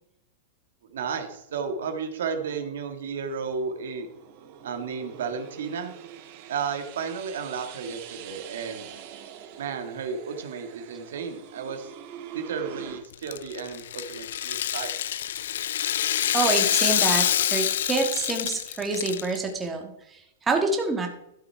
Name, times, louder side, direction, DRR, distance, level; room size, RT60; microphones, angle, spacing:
voice 1, 0.9-4.1 4.6-5.9 6.5-8.9 9.6-11.9 12.3-14.9, right 6 dB, 80° right, 6 dB, 1.8 m, -33 dB
sound 1, 2.9-13.0, right 8 dB, 45° right, 1.4 m, -44 dB
Rattle (instrument), 13.1-19.4, left 11 dB, 75° left, 0.4 m, -26 dB
voice 2, 16.3-21.1, right 3 dB, 10° right, 2 dB, 1.6 m, -27 dB
12.5 x 6.9 x 4.7 m, 0.81 s
supercardioid pair, 155°, 0 cm